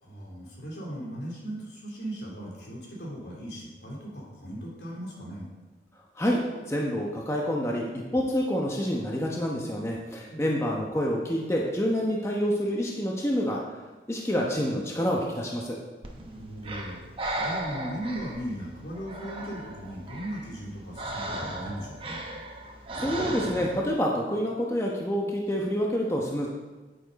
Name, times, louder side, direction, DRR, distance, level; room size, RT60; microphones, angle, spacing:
voice 1, 0.0-5.5 16.1-17.0 17.4-22.2, right 1 dB, 75° left, -4 dB, 3.3 m, -38 dB
voice 2, 6.7-7.8 8.1-13.6 14.1-15.8 22.9-26.5, equal, 15° left, -2 dB, 1.0 m, -27 dB
Breathing, 16.0-23.9, right 1 dB, 30° right, 1.0 m, -36 dB
9.9 x 9.0 x 4.1 m, 1.2 s
head